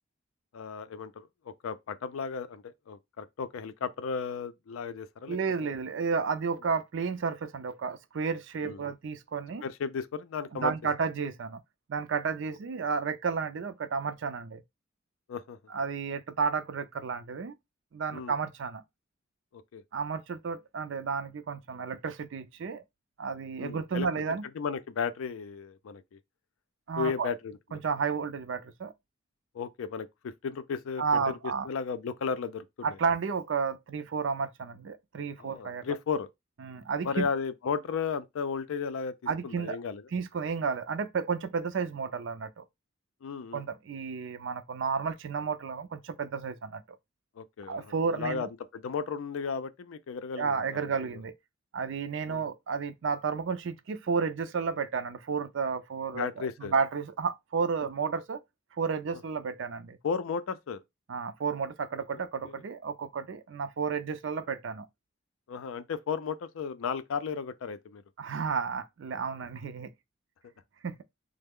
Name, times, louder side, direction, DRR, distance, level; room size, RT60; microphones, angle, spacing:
voice 1, 0.5-5.4 8.6-8.8 9.6-10.7 15.3-15.6 18.1-18.3 19.5-19.8 23.6-24.1 24.6-26.2 27.0-27.8 29.5-31.3 31.6-33.0 35.4-36.3 37.0-39.1 39.4-40.0 43.2-43.6 47.4-48.5 48.7-50.6 51.0-51.1 52.3-52.4 56.1-56.7 60.0-60.8 62.1-62.6 65.5-68.0, left 6 dB, 85° left, 0.4 m, -34 dB
voice 2, 5.3-9.6 10.5-11.6 11.9-14.6 15.7-17.5 17.9-18.8 19.9-22.8 23.2-24.4 26.9-27.3 27.7-28.9 31.0-31.7 32.8-36.0 36.6-37.3 39.3-39.8 40.1-42.6 43.5-46.8 47.7-48.5 50.4-51.3 51.7-58.4 58.8-60.0 61.1-64.9 68.2-69.9 70.8-71.0, right 5 dB, 65° right, 0.4 m, -32 dB
3.2 x 2.0 x 3.5 m
head